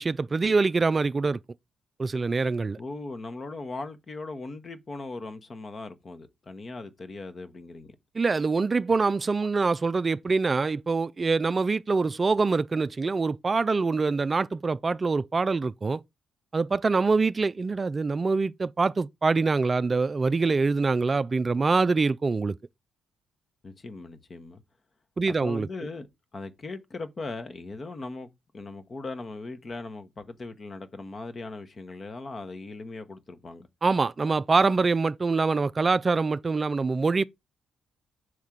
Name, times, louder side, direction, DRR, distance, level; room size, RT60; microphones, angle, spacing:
voice 1, 0.0-1.4 2.0-2.8 8.2-16.0 16.5-22.6 25.2-25.7 33.8-37.2, right 4 dB, 35° right, 0.3 m, -24 dB
voice 2, 2.8-8.0 23.6-24.6 25.3-26.1 26.3-28.3 28.5-33.7, left 3 dB, 40° left, 1.1 m, -39 dB
6.3 x 3.6 x 6.0 m
hypercardioid pair, 50°, 0 cm